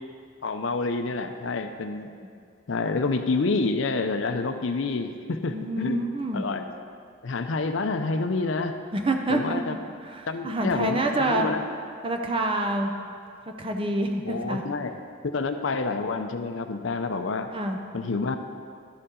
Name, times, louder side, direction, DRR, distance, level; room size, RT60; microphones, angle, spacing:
voice 1, 0.4-2.1 2.7-6.0 6.3-6.7 7.2-8.8 9.3-9.8 10.3-11.6 14.3-15.0 15.3-17.5 17.9-18.4, left 3 dB, 70° left, 8 dB, 0.5 m, -28 dB
voice 2, 5.5-6.4 8.9-11.5 12.0-12.9 13.6-14.6 17.5-17.8, right 1 dB, 25° right, 3 dB, 0.6 m, -27 dB
12.0 x 6.8 x 3.8 m, 2.2 s
head